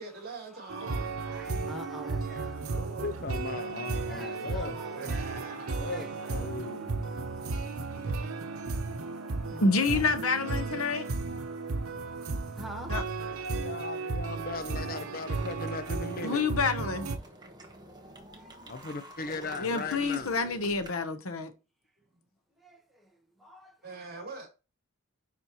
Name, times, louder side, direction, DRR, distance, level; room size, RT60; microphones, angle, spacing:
voice 1, 0.0-1.2 2.6-3.3 5.0-5.9 23.8-24.5, right 3 dB, 45° right, 3.6 m, -43 dB
voice 2, 0.5-2.9 3.6-10.2 10.6-13.6 17.2-17.3 18.3-18.8 22.6-23.8 24.1-24.2, equal, ahead, 1.3 m, -50 dB
sound 1, 0.7-17.2, right 3 dB, 90° right, 0.9 m, -34 dB
voice 3, 3.0-4.8 5.8-7.1 13.0-13.1 13.5-16.4 18.7-20.3, left 3 dB, 45° left, 0.6 m, -38 dB
voice 4, 9.6-11.1 12.9-13.0 16.2-17.1 19.6-21.5, left 3 dB, 90° left, 1.0 m, -28 dB
sound 2, 13.1-13.5 13.9-20.9, right 1 dB, 20° right, 1.2 m, -50 dB
9.8 x 4.3 x 3.1 m
head